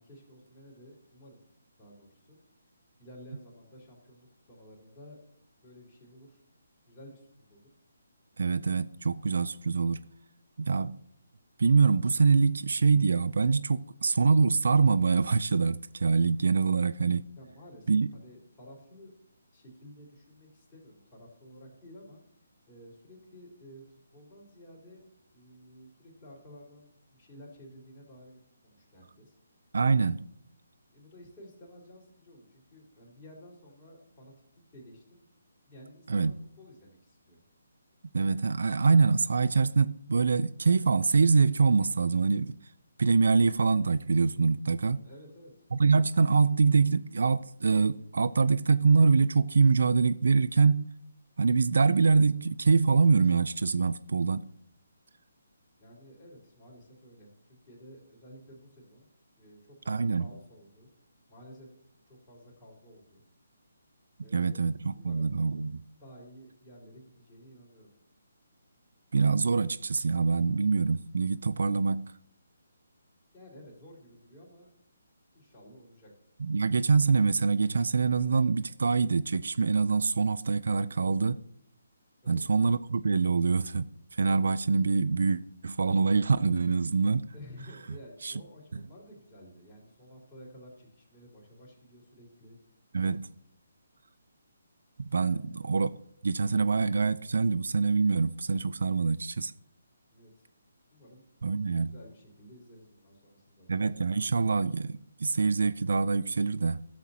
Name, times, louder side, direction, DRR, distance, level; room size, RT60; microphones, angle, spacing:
voice 1, 0.0-1.4 1.8-2.4 3.0-5.2 5.6-6.4 6.9-7.7 17.4-19.1 19.5-22.2 22.7-25.0 25.3-29.3 30.9-35.3 35.7-37.4 45.0-45.5 55.8-59.1 59.4-60.9 61.3-61.7 62.1-63.2 64.2-64.6 65.0-65.4 65.9-67.9 73.3-74.7 75.3-76.1 82.2-82.4 87.3-92.6 95.2-95.5 100.1-100.4 100.9-101.2 101.8-103.7, equal, 20° left, 3.7 m, -52 dB
voice 2, 8.4-10.0 10.6-11.0 11.6-17.3 17.9-18.1 29.7-30.2 36.1-36.3 38.1-42.5 43.0-45.0 45.7-50.9 51.4-54.5 59.9-60.3 64.3-65.8 69.1-72.1 76.4-81.4 82.3-83.9 84.2-87.2 88.2-88.3 92.9-93.3 95.1-95.9 96.2-99.5 101.4-101.9 103.7-106.8, right 4 dB, 65° right, 0.3 m, -25 dB
13.0 x 7.4 x 2.8 m
figure-of-eight pair, 145°, 0 cm